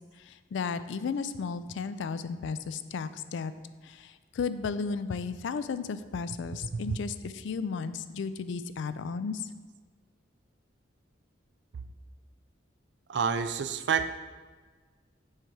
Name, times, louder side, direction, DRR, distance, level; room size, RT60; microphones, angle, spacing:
voice 1, 0.2-3.5 3.8-9.5, left 5 dB, 70° left, 13 dB, 0.3 m, -34 dB
voice 2, 13.1-14.1, right 6 dB, 60° right, 11 dB, 0.4 m, -28 dB
6.5 x 4.5 x 4.8 m, 1.4 s
head